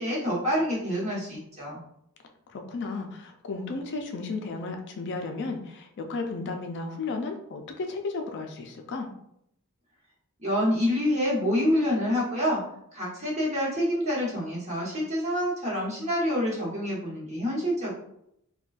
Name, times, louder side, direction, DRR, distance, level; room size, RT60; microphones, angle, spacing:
voice 1, 0.0-1.8 10.4-12.6 12.9-17.9, equal, 30° right, -6 dB, 1.2 m, -27 dB
voice 2, 2.5-9.1, left 3 dB, 55° left, 4 dB, 0.4 m, -34 dB
3.7 x 2.2 x 2.4 m, 0.76 s
head